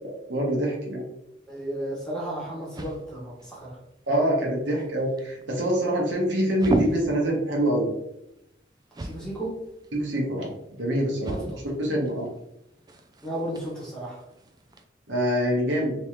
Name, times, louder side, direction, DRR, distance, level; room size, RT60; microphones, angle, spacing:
voice 1, 0.0-1.0 4.1-7.9 9.9-10.5 10.8-11.3 11.8-12.3 15.1-15.9, equal, 70° right, -2 dB, 1.1 m, -25 dB
sound 1, 1.4-14.8, right 1 dB, 20° right, 0.3 m, -38 dB
voice 2, 1.5-3.8 9.0-9.5 11.3-11.6 13.2-14.2, right 1 dB, 5° left, -5 dB, 1.1 m, -34 dB
3.4 x 3.1 x 3.0 m, 0.82 s
head